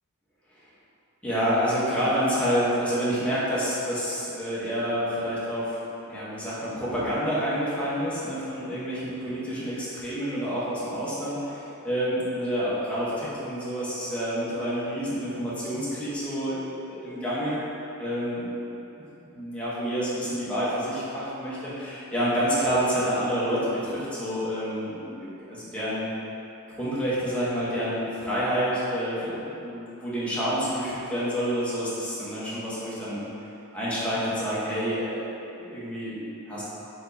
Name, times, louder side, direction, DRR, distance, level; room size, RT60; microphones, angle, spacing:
voice 1, 1.2-5.8 6.1-16.6 16.9-17.6 18.0-18.5 18.9-26.1 26.8-33.2 33.7-36.6, equal, 5° left, -10 dB, 1.0 m, -28 dB
4.3 x 4.1 x 2.7 m, 3.0 s
head